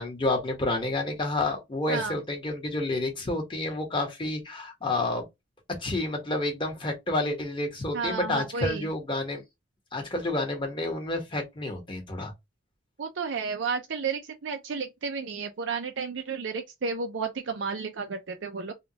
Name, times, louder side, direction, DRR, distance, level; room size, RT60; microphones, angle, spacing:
voice 1, 0.0-5.3 5.8-9.4 9.9-12.3, left 2 dB, 25° left, 1.2 m, -29 dB
voice 2, 7.9-8.9 13.0-18.7, right 5 dB, 80° right, 0.5 m, -32 dB
3.5 x 2.3 x 2.8 m
head